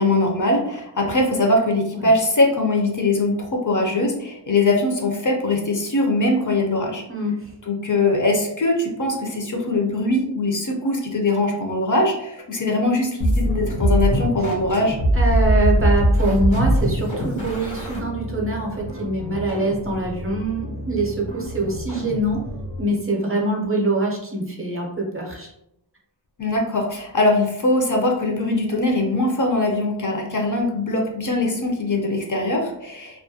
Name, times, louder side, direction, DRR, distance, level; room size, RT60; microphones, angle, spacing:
voice 1, 0.0-7.0 7.6-15.0 26.4-33.2, left 2 dB, 45° left, 1 dB, 0.5 m, -21 dB
sound 1, 13.2-22.9, equal, 85° left, 0.9 m, -23 dB
voice 2, 15.1-22.4 22.8-25.5, right 2 dB, 30° right, -1 dB, 0.5 m, -24 dB
2.3 x 2.1 x 2.6 m, 0.80 s
wide cardioid pair, 75°, 45 cm